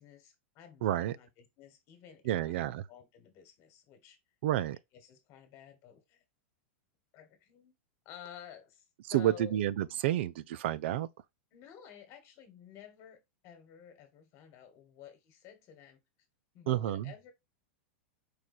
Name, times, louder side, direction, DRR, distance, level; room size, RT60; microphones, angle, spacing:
voice 1, 0.0-2.5 2.9-4.2 4.9-6.2 7.1-7.7 8.0-9.6 11.5-16.0 16.5-17.3, left 8 dB, 45° left, 1.5 m, -52 dB
voice 2, 0.8-1.2 2.3-2.8 4.4-4.8 9.1-11.1 16.7-17.0, right 13 dB, 65° right, 0.4 m, -30 dB
4.8 x 2.2 x 4.2 m
hypercardioid pair, 120°, 7 cm